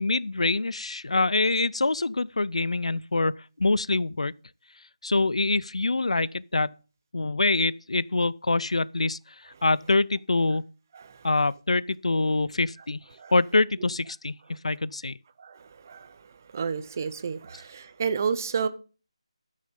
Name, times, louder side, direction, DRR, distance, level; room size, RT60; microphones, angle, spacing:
voice 1, 0.0-4.3 5.0-6.8 7.1-10.6 11.2-13.0 13.3-15.2, left 3 dB, 80° left, 0.4 m, -25 dB
voice 2, 15.4-16.2 16.5-18.7, right 6 dB, 30° right, 0.8 m, -31 dB
12.5 x 6.5 x 5.3 m
figure-of-eight pair, 170°, 3 cm